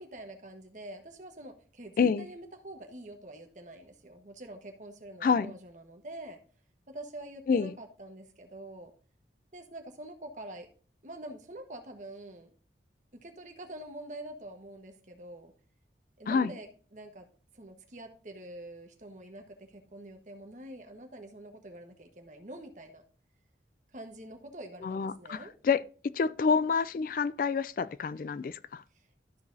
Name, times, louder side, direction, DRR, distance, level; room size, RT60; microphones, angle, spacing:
voice 1, 0.0-6.4 6.9-8.9 9.5-10.7 11.0-12.5 13.1-15.5 16.2-17.3 17.5-23.0 23.9-25.5 28.9-29.1, right 1 dB, 45° right, 1.3 m, -46 dB
voice 2, 24.8-28.8, left 5 dB, 50° left, 0.3 m, -28 dB
13.5 x 4.9 x 2.7 m
head